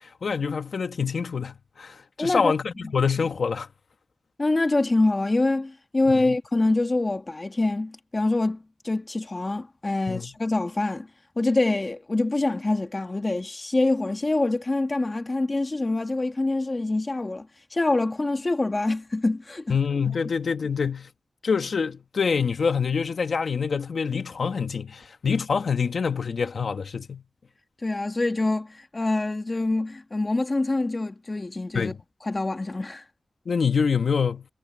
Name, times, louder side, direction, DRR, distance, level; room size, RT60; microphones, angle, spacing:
voice 1, 0.0-3.7 6.3-6.4 10.1-10.3 19.7-21.1 21.4-27.2 31.7-32.0 33.4-34.4, left 5 dB, 85° left, 1.6 m, -26 dB
voice 2, 2.2-2.5 4.4-11.1 11.4-19.8 27.8-31.9 32.2-33.0, left 2 dB, 40° left, 1.9 m, -25 dB
cardioid pair, 50°, 0 cm